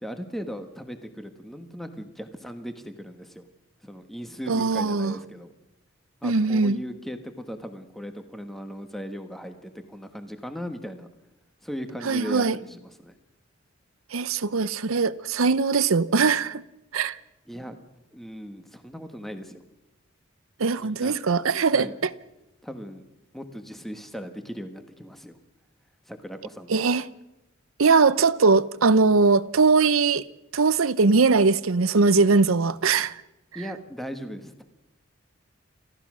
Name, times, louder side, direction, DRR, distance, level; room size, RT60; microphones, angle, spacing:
voice 1, 0.0-3.5 3.8-5.5 6.2-11.1 11.6-13.1 17.5-17.8 18.1-19.6 20.8-21.2 21.7-21.9 22.6-23.1 23.3-25.4 26.1-26.8 33.5-34.6, equal, ahead, 1.3 m, -38 dB
voice 2, 4.5-5.2 6.2-6.8 12.0-12.6 14.1-16.6 16.9-17.2 20.6-22.1 26.7-27.0 27.8-30.2 30.5-33.1, right 4 dB, 90° right, 0.7 m, -21 dB
30.0 x 14.5 x 6.2 m
head